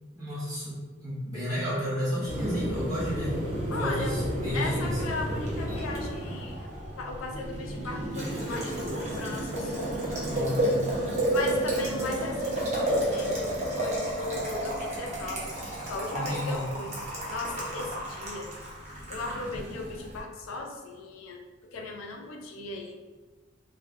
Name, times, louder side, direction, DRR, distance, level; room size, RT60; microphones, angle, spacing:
voice 1, 0.1-3.4 3.7-5.0 10.2-10.8 16.1-16.7, equal, 20° right, -9 dB, 1.1 m, -32 dB
Boiling, 2.3-20.2, right 1 dB, 35° right, 0.8 m, -31 dB
voice 2, 3.7-4.2 4.5-6.7 7.0-9.8 11.3-15.5 15.9-16.9 17.3-18.5 19.0-21.4 21.7-23.0, left 3 dB, 85° left, 1 dB, 0.4 m, -37 dB
3.2 x 2.2 x 2.4 m, 1.2 s
head